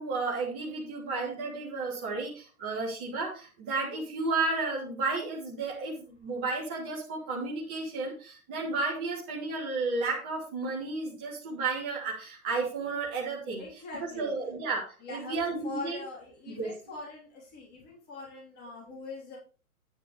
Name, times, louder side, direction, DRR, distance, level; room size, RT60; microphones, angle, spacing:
voice 1, 0.0-16.0 16.5-16.7, right 3 dB, 5° right, -4 dB, 0.4 m, -33 dB
voice 2, 13.6-14.3 15.0-19.4, left 3 dB, 20° left, -3 dB, 3.8 m, -43 dB
9.3 x 9.2 x 3.3 m, 0.35 s
hypercardioid pair, 125°, 44 cm